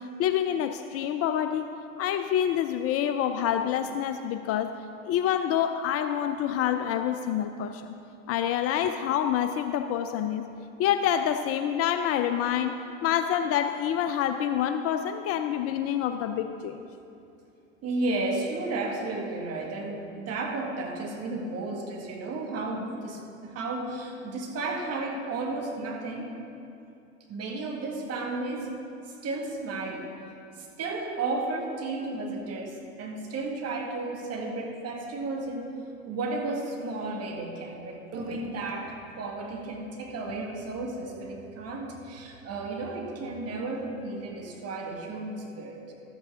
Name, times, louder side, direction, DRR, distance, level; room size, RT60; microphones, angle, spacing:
voice 1, 0.0-4.7 5.0-7.8 8.3-10.5 10.8-16.8, left 9 dB, 40° left, 8 dB, 0.4 m, -27 dB
voice 2, 17.8-26.3 27.3-28.7 29.1-30.1 30.6-35.7 36.0-45.8, right 2 dB, 40° right, 0 dB, 1.8 m, -33 dB
13.0 x 8.3 x 3.6 m, 2.7 s
hypercardioid pair, 90°, 39 cm